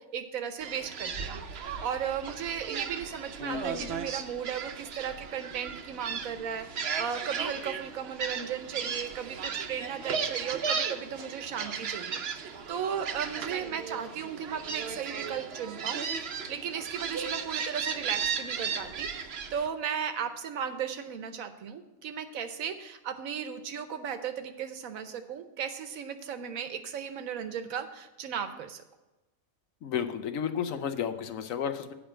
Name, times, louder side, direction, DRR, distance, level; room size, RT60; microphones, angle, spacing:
voice 1, 0.0-28.8, right 8 dB, 80° right, 9 dB, 1.2 m, -36 dB
Gull seagull, 0.6-19.7, right 6 dB, 55° right, 0.8 m, -36 dB
voice 2, 3.4-4.0 29.8-31.9, left 8 dB, 75° left, 9 dB, 1.1 m, -33 dB
8.7 x 5.1 x 7.5 m, 1.0 s
omnidirectional pair, 1.4 m